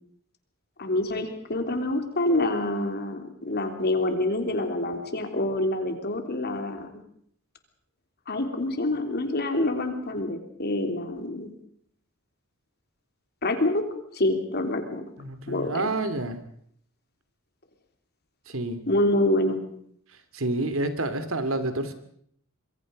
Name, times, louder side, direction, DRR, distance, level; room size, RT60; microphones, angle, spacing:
voice 1, 0.8-6.9 8.3-11.5 13.4-13.8 14.1-15.0 15.5-15.7 18.9-19.6, left 1 dB, 50° left, 6 dB, 3.4 m, -26 dB
voice 2, 15.2-16.4 18.5-18.8 20.3-21.9, right 2 dB, 75° right, 10 dB, 2.7 m, -28 dB
26.0 x 23.0 x 5.3 m, 0.63 s
head